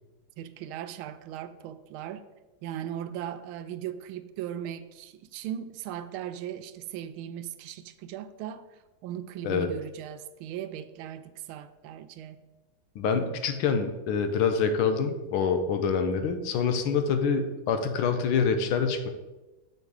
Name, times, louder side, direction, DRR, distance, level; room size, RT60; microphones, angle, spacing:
voice 1, 0.4-2.2 2.6-8.7 9.0-12.4 13.2-13.4, right 10 dB, 85° right, 11 dB, 1.4 m, -38 dB
voice 2, 12.9-19.1, left 6 dB, 85° left, 7 dB, 1.6 m, -26 dB
8.1 x 4.8 x 4.7 m, 1.1 s
omnidirectional pair, 2.3 m